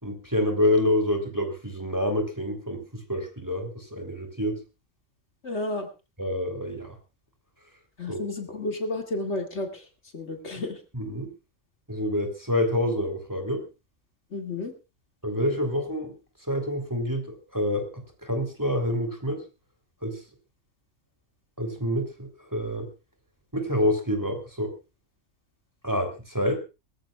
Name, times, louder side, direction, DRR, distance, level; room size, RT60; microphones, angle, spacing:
voice 1, 0.0-4.6 6.2-7.0 8.1-8.2 10.9-11.3 11.9-13.6 15.2-16.1 16.5-17.9 18.2-19.4 20.0-20.2 21.6-22.9 23.5-24.7 25.8-26.6, left 1 dB, 15° right, 5 dB, 3.2 m, -27 dB
voice 2, 5.4-5.9 8.0-9.9 10.1-10.8 14.3-14.7, left 2 dB, 60° left, 4 dB, 2.5 m, -31 dB
23.5 x 14.5 x 2.4 m, 0.29 s
omnidirectional pair, 1.3 m